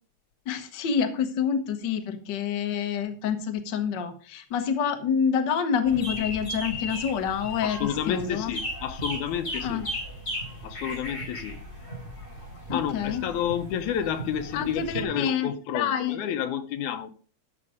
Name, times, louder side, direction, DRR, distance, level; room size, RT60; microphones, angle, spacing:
voice 1, 0.4-8.5 9.6-9.9 12.7-13.2 14.5-16.2, left 7 dB, 50° left, 1.4 m, -27 dB
sound 1, 5.8-15.0, equal, 15° left, 3.9 m, -36 dB
voice 2, 7.6-9.8 10.6-11.6 12.7-17.1, left 9 dB, 80° left, 2.2 m, -30 dB
13.0 x 5.8 x 5.0 m
omnidirectional pair, 3.4 m